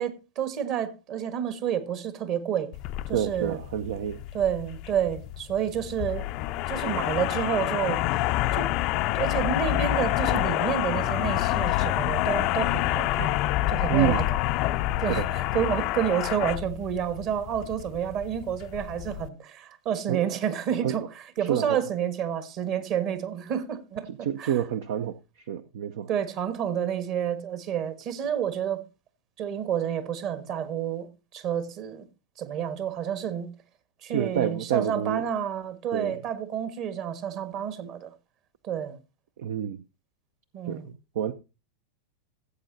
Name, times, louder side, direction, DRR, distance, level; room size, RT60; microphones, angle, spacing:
voice 1, 0.0-2.7 3.1-3.6 4.3-6.3 6.7-8.0 8.5-8.7 9.1-13.3 13.7-14.4 15.0-24.5 26.1-28.8 29.4-32.1 32.4-33.5 34.0-38.1 38.6-39.0 40.5-40.9, right 9 dB, 40° right, 1.5 m, -29 dB
sound 1, 2.7-19.3, left 15 dB, 45° left, 0.5 m, -28 dB
voice 2, 3.1-4.2 13.9-14.2 15.1-15.3 20.1-20.3 20.8-21.0 21.4-21.8 24.1-26.1 34.1-35.2 35.9-36.2 39.4-39.8 40.7-41.3, right 10 dB, 60° right, 0.6 m, -28 dB
16.5 x 8.1 x 2.7 m
figure-of-eight pair, 90°, 0 cm